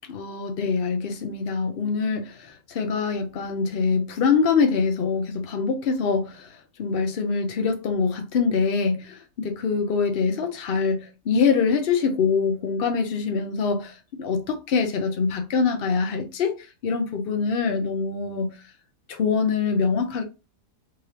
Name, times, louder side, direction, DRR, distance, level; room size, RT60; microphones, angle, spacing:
voice 1, 0.1-6.5 6.8-18.6 19.1-20.2, left 5 dB, 75° left, 0.5 m, -24 dB
3.7 x 3.2 x 2.8 m
omnidirectional pair, 1.8 m